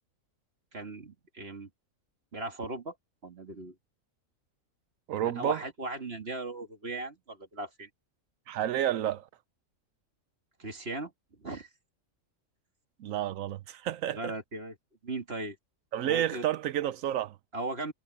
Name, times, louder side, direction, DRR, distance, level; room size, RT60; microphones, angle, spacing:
voice 1, 0.7-1.7 2.3-2.9 3.2-3.7 5.2-7.9 10.6-11.7 14.1-14.7 15.0-15.6 16.0-16.4 17.5-17.9, right 2 dB, 50° right, 2.5 m, -38 dB
voice 2, 5.1-5.6 8.5-9.3 13.0-14.3 15.9-17.4, right 11 dB, 80° right, 1.0 m, -30 dB
omnidirectional pair, 1.4 m